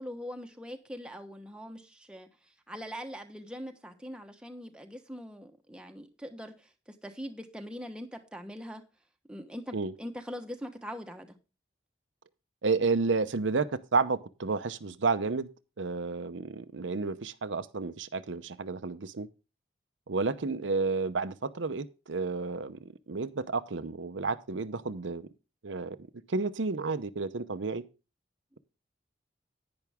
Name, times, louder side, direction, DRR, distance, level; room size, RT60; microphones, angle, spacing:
voice 1, 0.0-6.7 7.0-8.8 9.3-11.4, equal, 5° right, 1.1 m, -42 dB
voice 2, 12.6-15.5 15.8-19.3 20.1-25.3 25.6-26.0 26.3-27.8, right 4 dB, 85° right, 0.7 m, -31 dB
10.5 x 9.6 x 3.5 m
head